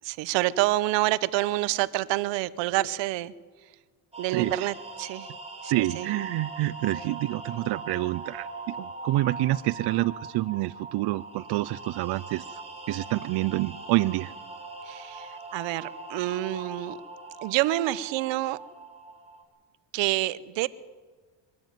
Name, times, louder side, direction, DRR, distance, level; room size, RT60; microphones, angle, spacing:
voice 1, 0.0-3.3 4.2-5.3 5.6-6.1 14.8-17.0 17.4-18.6 19.9-20.7, right 16 dB, 85° right, 19 dB, 0.9 m, -27 dB
sound 1, 4.1-19.4, right 3 dB, 15° right, 3.5 m, -41 dB
voice 2, 4.3-4.7 5.7-12.6 12.9-14.3, right 18 dB, 65° right, 16 dB, 0.6 m, -28 dB
23.5 x 12.5 x 9.2 m, 1.4 s
cardioid pair, 125°, 43 cm